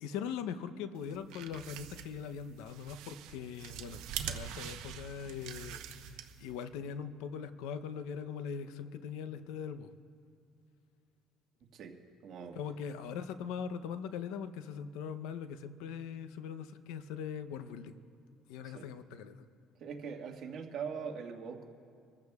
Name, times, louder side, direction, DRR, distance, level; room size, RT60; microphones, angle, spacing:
voice 1, 0.0-9.9 12.5-18.0 18.5-19.4, left 7 dB, 85° left, 10 dB, 0.7 m, -41 dB
sound 1, 1.0-6.6, right 10 dB, 80° right, 0.9 m, -44 dB
voice 2, 12.2-12.6 18.6-18.9 19.8-21.7, right 6 dB, 55° right, 2 dB, 1.6 m, -42 dB
26.5 x 14.5 x 2.4 m, 2.4 s
cardioid pair, 110°, 0 cm